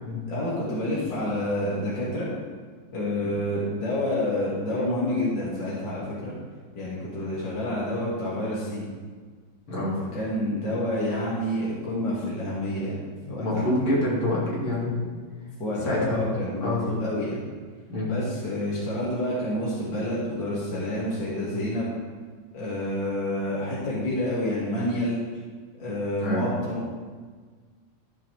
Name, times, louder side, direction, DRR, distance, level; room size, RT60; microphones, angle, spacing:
voice 1, 0.3-2.3 2.9-6.3 6.7-8.8 10.1-13.0 13.3-13.6 15.6-17.4 18.1-21.9 22.5-25.2 25.8-26.8, left 1 dB, 60° left, -8 dB, 3.3 m, -28 dB
voice 2, 13.2-15.1 15.8-16.3 16.6-16.8 17.9-18.1 26.2-26.5, left 1 dB, 85° left, -7 dB, 4.1 m, -26 dB
14.0 x 9.8 x 3.6 m, 1.5 s
omnidirectional pair, 2.2 m